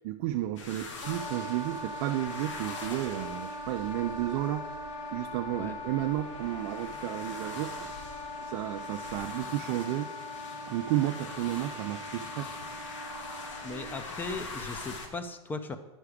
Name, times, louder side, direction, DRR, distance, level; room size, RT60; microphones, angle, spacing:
voice 1, 0.0-4.7 5.1-7.9 8.4-10.1 10.7-12.5, right 14 dB, 50° right, 6 dB, 0.4 m, -32 dB
Immediate near highway, 0.6-15.1, left 3 dB, 80° left, 1.5 m, -44 dB
Wind instrument woodwind instrument, 1.0-13.9, left 1 dB, 30° left, 1.6 m, -41 dB
voice 2, 13.6-15.8, left 3 dB, 10° left, 10 dB, 0.5 m, -38 dB
9.6 x 5.9 x 4.9 m, 1.2 s
supercardioid pair, 145°, 16 cm